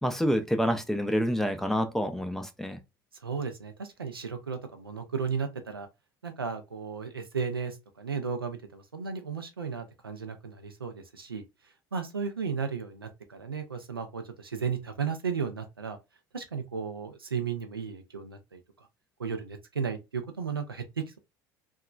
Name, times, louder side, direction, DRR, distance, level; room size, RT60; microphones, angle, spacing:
voice 1, 0.0-2.8, equal, 5° left, 0.4 m, -27 dB
voice 2, 3.2-5.9 6.2-11.4 11.9-16.0 16.3-18.6 19.2-21.2, right 6 dB, 85° right, 0.4 m, -34 dB
2.8 x 2.3 x 2.3 m
figure-of-eight pair, 65°, 12 cm